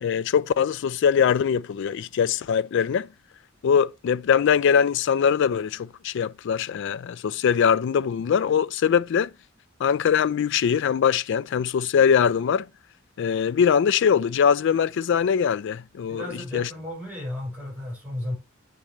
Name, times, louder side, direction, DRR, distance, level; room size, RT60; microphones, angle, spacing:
voice 1, 0.0-3.1 3.6-9.3 9.8-12.7 13.2-16.7, left 7 dB, 60° left, 0.3 m, -22 dB
voice 2, 16.1-18.3, left 1 dB, 10° right, 5.5 m, -33 dB
8.7 x 5.4 x 3.1 m
head